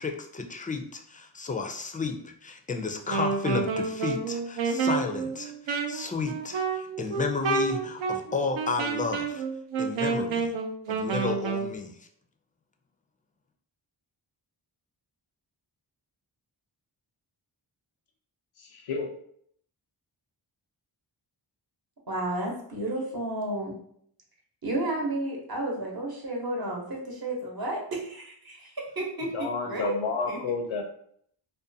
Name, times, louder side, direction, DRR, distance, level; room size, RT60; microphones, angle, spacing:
voice 1, 0.0-5.5 5.9-9.4 9.8-10.5 10.9-12.1, left 4 dB, 20° left, 4 dB, 0.3 m, -32 dB
Wind instrument woodwind instrument, 3.0-11.7, right 4 dB, 75° right, 0.5 m, -29 dB
voice 2, 18.6-19.1 29.3-30.8, left 4 dB, 90° left, 3 dB, 0.6 m, -31 dB
voice 3, 22.1-23.8 24.6-29.9 30.3-30.4, right 1 dB, 50° right, -1 dB, 0.9 m, -32 dB
2.5 x 2.2 x 2.6 m, 0.65 s
cardioid pair, 50°, 48 cm